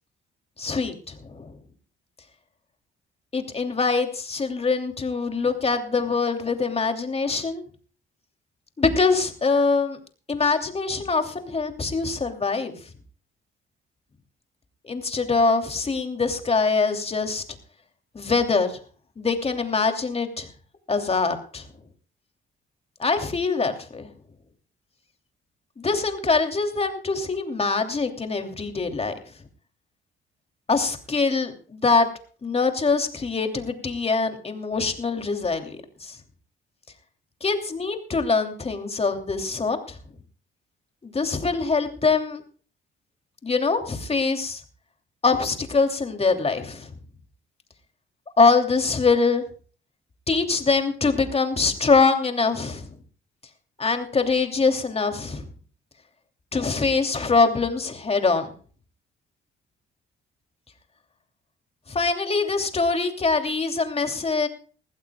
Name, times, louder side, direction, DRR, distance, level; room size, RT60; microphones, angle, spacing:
voice 1, 0.6-1.6 3.3-7.6 8.8-10.0 10.3-12.7 14.8-17.4 18.1-18.8 19.2-20.5 20.9-21.7 23.0-24.1 25.8-29.1 30.7-32.1 32.4-36.2 37.4-40.0 41.0-42.4 43.4-44.6 45.2-46.9 48.4-49.4 50.3-52.9 53.8-55.5 56.5-58.5 61.9-64.5, left 4 dB, 30° left, 6 dB, 2.9 m, -23 dB
21.0 x 15.0 x 2.3 m, 0.42 s
cardioid pair, 90°, 20 cm